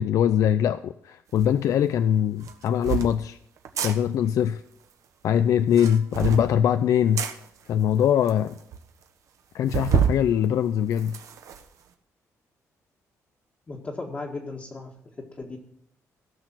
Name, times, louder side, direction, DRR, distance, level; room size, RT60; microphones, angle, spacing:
voice 1, 0.0-3.4 3.8-4.6 5.2-7.2 7.7-8.6 9.5-11.2, left 9 dB, 70° left, 12 dB, 0.5 m, -22 dB
sound 1, 1.4-1.5 2.4-3.1 3.6-3.9 5.6-6.5 7.2-7.3 8.0-8.1 8.3-8.4 8.7-8.8 9.7-10.2 10.6-11.6, right 8 dB, 65° right, 1.3 m, -27 dB
voice 2, 13.7-14.9 15.3-15.6, left 3 dB, 25° left, -3 dB, 1.7 m, -35 dB
16.5 x 6.5 x 6.1 m, 0.73 s
cardioid pair, 145°, 6 cm